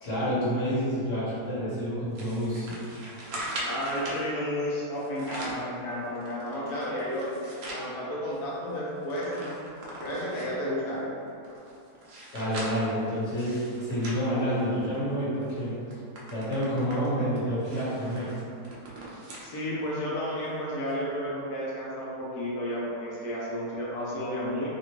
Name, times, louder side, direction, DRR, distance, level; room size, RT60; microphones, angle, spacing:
voice 1, 0.0-2.8 12.3-15.7 16.3-18.3, equal, 50° left, -10 dB, 1.4 m, -28 dB
sound 1, 2.2-4.2 5.0-5.7 6.2-7.9 8.3-8.4 8.7-10.7 11.3-15.0 15.4-15.6 15.9-19.5 19.9-20.0 20.9-21.0, right 1 dB, 70° right, 0.6 m, -40 dB
voice 2, 3.6-7.3 7.7-9.5 10.0-11.1 19.4-24.7, equal, 70° left, -6 dB, 1.3 m, -32 dB
3.4 x 2.5 x 3.0 m, 2.6 s
omnidirectional pair, 1.8 m